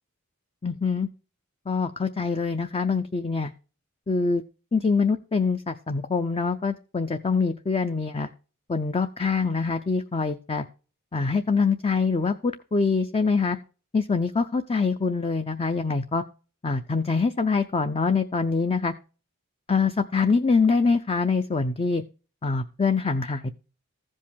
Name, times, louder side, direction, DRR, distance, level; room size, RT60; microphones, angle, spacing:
voice 1, 0.6-1.1 1.7-3.5 4.1-4.4 4.7-8.3 8.7-10.6 11.1-13.6 13.9-16.2 16.6-18.9 19.7-22.0 22.4-23.5, left 4 dB, 25° left, 8 dB, 0.5 m, -24 dB
15.0 x 5.4 x 3.3 m, 0.36 s
head